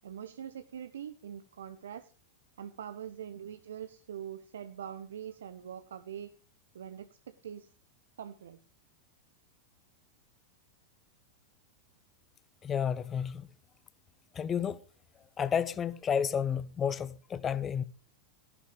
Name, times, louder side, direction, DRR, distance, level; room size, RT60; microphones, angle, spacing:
voice 1, 0.0-2.1 2.6-6.3 6.7-7.7 8.2-8.6, right 9 dB, 65° right, 0.8 m, -43 dB
voice 2, 12.6-13.5 14.3-14.8 15.4-17.8, left 7 dB, 20° left, 0.9 m, -31 dB
14.5 x 11.5 x 5.0 m
figure-of-eight pair, 90°, 0 cm